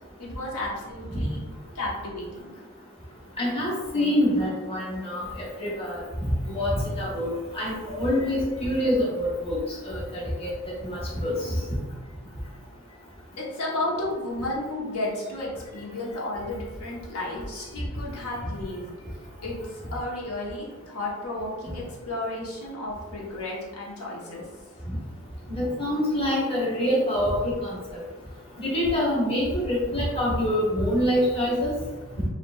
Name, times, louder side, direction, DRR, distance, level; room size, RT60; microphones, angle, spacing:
voice 1, 0.2-1.4 1.7-2.6 13.4-18.9 19.4-24.5, left 2 dB, 85° left, -4 dB, 1.1 m, -33 dB
voice 2, 3.4-6.0 6.5-9.6 9.8-10.5 10.8-11.3 24.9-25.0 25.5-28.0 28.6-31.7, left 1 dB, 25° left, -6 dB, 1.2 m, -26 dB
6.6 x 2.5 x 2.4 m, 1.3 s
head